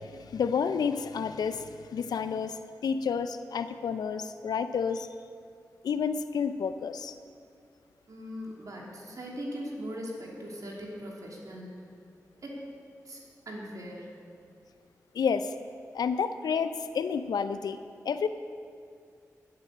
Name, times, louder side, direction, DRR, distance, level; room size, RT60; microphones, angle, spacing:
voice 1, 0.0-5.1 5.8-7.1 15.1-15.5 15.9-17.8 18.0-18.3, left 6 dB, 85° left, 11 dB, 0.5 m, -30 dB
voice 2, 8.1-11.8 12.4-12.6 13.0-13.2 13.5-14.1, equal, 65° right, -2 dB, 2.9 m, -40 dB
9.6 x 9.6 x 7.3 m, 2.3 s
cardioid pair, 45°, 7 cm